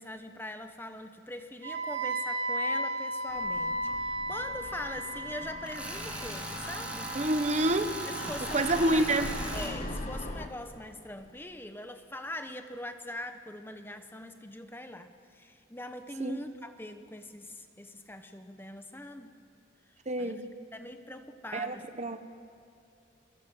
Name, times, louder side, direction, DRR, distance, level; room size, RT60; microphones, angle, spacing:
voice 1, 0.0-7.2 8.1-9.1 9.5-19.4 20.2-20.4 20.7-21.9, left 1 dB, 10° left, 1.1 m, -42 dB
Wind instrument woodwind instrument, 1.6-9.5, right 1 dB, 80° right, 7.7 m, -36 dB
sound 1, 3.3-10.5, left 1 dB, 35° left, 1.7 m, -42 dB
Tools, 5.7-9.7, right 1 dB, 5° right, 2.9 m, -39 dB
voice 2, 7.1-8.0 8.5-9.4 16.2-16.4 20.1-20.5 21.5-22.2, right 1 dB, 35° right, 1.2 m, -28 dB
29.5 x 23.0 x 8.0 m
head